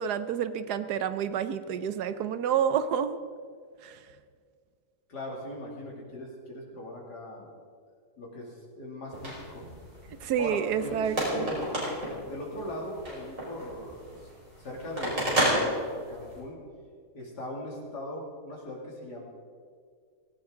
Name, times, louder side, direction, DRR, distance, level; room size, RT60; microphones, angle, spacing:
voice 1, 0.0-3.2 3.8-4.0 10.2-11.5, right 8 dB, 75° right, 12 dB, 1.3 m, -29 dB
voice 2, 5.1-7.6 8.2-9.6 10.2-11.6 12.3-14.3 14.6-15.7 16.1-16.6 17.1-19.2, left 1 dB, 75° left, -3 dB, 3.2 m, -40 dB
sound 1, 9.1-16.4, equal, 50° right, 5.3 m, -32 dB
18.0 x 16.5 x 3.8 m, 2.1 s
omnidirectional pair, 1.8 m